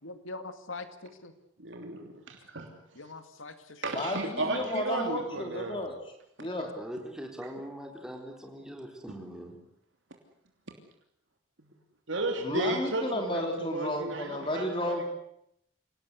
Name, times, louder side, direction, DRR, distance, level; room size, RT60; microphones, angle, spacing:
voice 1, 0.0-1.3 2.9-4.5 5.0-5.1 5.4-5.6, left 3 dB, 80° left, 9 dB, 2.3 m, -44 dB
voice 2, 1.6-2.7 3.8-5.8 12.1-15.0, right 2 dB, 70° right, 3 dB, 3.0 m, -34 dB
voice 3, 3.9-5.9 6.4-6.7 12.4-15.0, left 1 dB, 25° left, 4 dB, 3.3 m, -32 dB
voice 4, 6.8-9.6, equal, 5° right, 2 dB, 4.1 m, -41 dB
27.0 x 18.0 x 8.2 m, 0.77 s
head